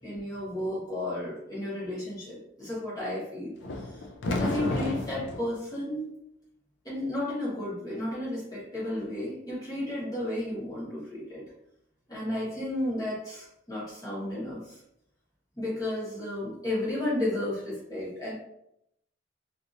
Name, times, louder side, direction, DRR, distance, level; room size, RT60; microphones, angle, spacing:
voice 1, 0.0-3.5 3.8-6.1 6.8-11.4 12.1-14.8 15.6-18.3, left 1 dB, 20° left, -9 dB, 1.2 m, -33 dB
sound 1, 3.6-5.5, left 2 dB, 65° left, 0.4 m, -31 dB
2.7 x 2.5 x 2.6 m, 0.78 s
head